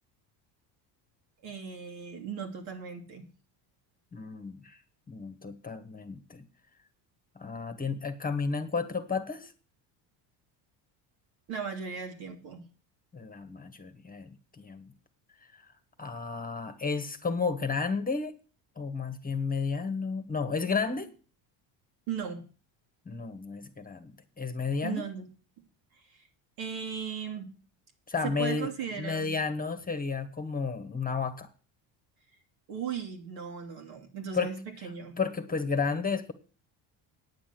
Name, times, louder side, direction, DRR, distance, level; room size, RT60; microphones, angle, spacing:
voice 1, 1.4-3.3 11.5-12.7 22.1-22.4 24.8-25.3 26.1-26.3 26.6-27.5 28.2-29.3 32.7-35.2, right 6 dB, 75° right, 3 dB, 2.9 m, -37 dB
voice 2, 4.1-4.8 5.1-6.4 7.3-9.5 13.1-14.9 15.5-15.7 16.0-18.3 18.8-21.1 23.0-25.0 28.1-28.7 28.9-31.5 34.3-34.5 35.2-36.3, left 5 dB, 20° left, 10 dB, 1.3 m, -32 dB
9.5 x 7.4 x 7.6 m, 0.38 s
cardioid pair, 105°, 47 cm